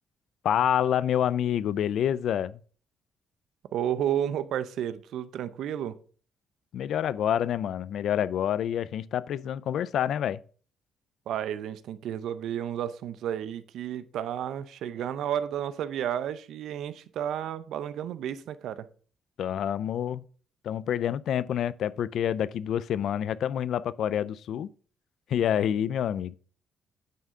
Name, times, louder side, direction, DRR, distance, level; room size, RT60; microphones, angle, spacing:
voice 1, 0.4-2.6 6.7-10.4 19.4-20.2 20.6-24.7 25.3-26.3, left 10 dB, 70° left, 0.4 m, -27 dB
voice 2, 3.7-6.0 11.3-18.9, right 10 dB, 75° right, 0.6 m, -32 dB
9.3 x 3.7 x 5.4 m
cardioid pair, 90°, 0 cm